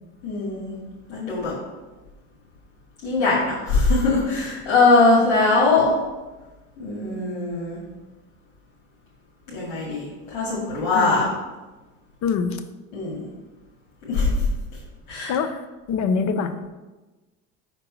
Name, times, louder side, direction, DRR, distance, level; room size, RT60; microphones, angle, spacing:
voice 1, 0.2-0.7 1.1-1.5 3.0-5.9 6.8-7.8 9.5-11.3 12.9-13.3 14.1-14.3 15.1-15.3, left 3 dB, 75° left, -7 dB, 2.3 m, -21 dB
voice 2, 10.9-11.3 12.2-12.6 15.3-15.6 15.9-16.5, left 5 dB, 50° left, 10 dB, 0.8 m, -24 dB
5.8 x 4.5 x 5.3 m, 1.2 s
supercardioid pair, 100°, 35 cm